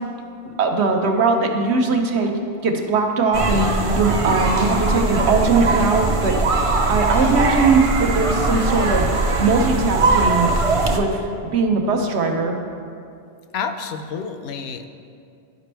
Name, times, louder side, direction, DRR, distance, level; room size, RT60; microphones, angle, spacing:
voice 1, 0.6-2.3 2.6-3.7 3.9-6.4 6.9-9.0 9.4-10.5 10.9-11.2 11.5-12.6, right 4 dB, 80° right, 3 dB, 1.1 m, -20 dB
sound 1, 3.3-11.0, right 3 dB, 40° right, 0.5 m, -20 dB
voice 2, 13.5-14.9, left 6 dB, 75° left, 7 dB, 0.8 m, -29 dB
12.0 x 5.1 x 3.3 m, 2.5 s
omnidirectional pair, 1.1 m